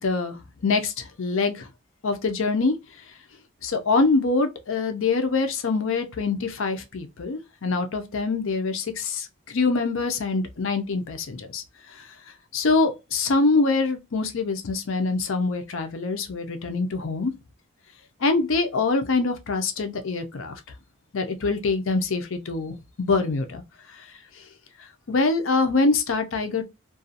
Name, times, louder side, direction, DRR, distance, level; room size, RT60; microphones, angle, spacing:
voice 1, 0.0-1.7 2.0-2.7 3.6-11.6 11.9-12.1 12.5-17.3 18.2-20.6 21.1-23.6 24.0-24.1 25.1-26.7, left 3 dB, 60° left, 0.5 m, -24 dB
2.5 x 2.3 x 2.6 m
head